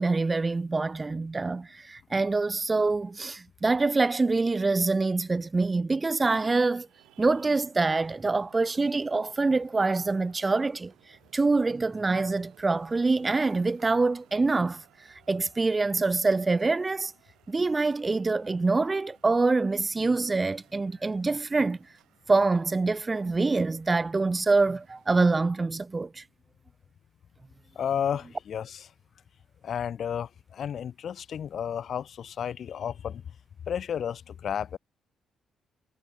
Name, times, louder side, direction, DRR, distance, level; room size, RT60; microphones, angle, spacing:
voice 1, 0.0-6.9 7.2-10.9 11.3-14.8 15.3-17.1 17.5-21.8 22.3-26.2, right 3 dB, 25° right, 0.9 m, -25 dB
Traffic noise roadway noise, 6.8-25.5, right 15 dB, 90° right, 5.6 m, -62 dB
voice 2, 27.7-28.9 29.6-33.2 33.7-34.8, left 8 dB, 60° left, 1.2 m, -32 dB
cardioid pair, 90°, 0 cm